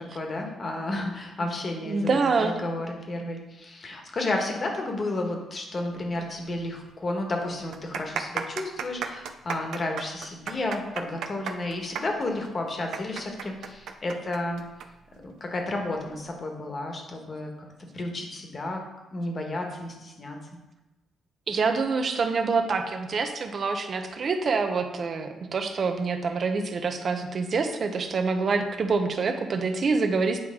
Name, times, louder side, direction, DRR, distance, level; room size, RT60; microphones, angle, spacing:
voice 1, 0.0-14.6 15.2-17.5 17.9-18.8 19.1-20.4, left 2 dB, 35° left, 2 dB, 1.4 m, -32 dB
voice 2, 1.8-2.5 21.5-30.4, right 4 dB, 45° right, 6 dB, 0.8 m, -26 dB
sound 1, 6.5-6.6 6.9-7.0 7.6-14.9 15.1-15.2 16.0-16.3, right 7 dB, 80° right, 0.5 m, -34 dB
8.9 x 4.7 x 3.7 m, 1.0 s
cardioid pair, 115°, 0 cm